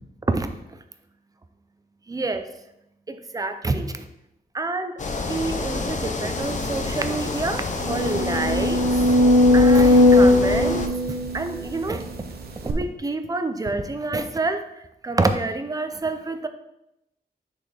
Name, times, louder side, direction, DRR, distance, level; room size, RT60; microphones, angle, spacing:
voice 1, 2.1-2.5 3.1-4.1 4.5-8.9 9.5-10.9 11.3-12.1 12.6-14.6 15.0-16.5, right 3 dB, 20° right, 8 dB, 0.5 m, -27 dB
sound 1, 5.0-10.9, left 3 dB, 50° left, 0.6 m, -28 dB
sound 2, 6.7-6.8 7.1-7.2 7.8-12.0 12.7-12.8, left 1 dB, 70° right, 0.9 m, -18 dB
6.6 x 4.2 x 4.8 m, 0.85 s
wide cardioid pair, 150°, 17 cm